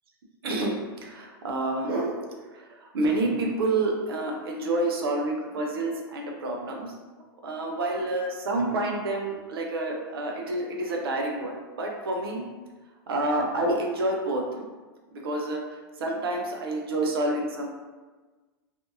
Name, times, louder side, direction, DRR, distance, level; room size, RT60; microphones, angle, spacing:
voice 1, 0.4-2.2 2.5-6.9 7.4-12.4 13.1-14.7 15.1-15.6 16.0-17.7, right 2 dB, 80° right, 1 dB, 0.5 m, -28 dB
2.5 x 2.5 x 2.6 m, 1.3 s
hypercardioid pair, 110°, 12 cm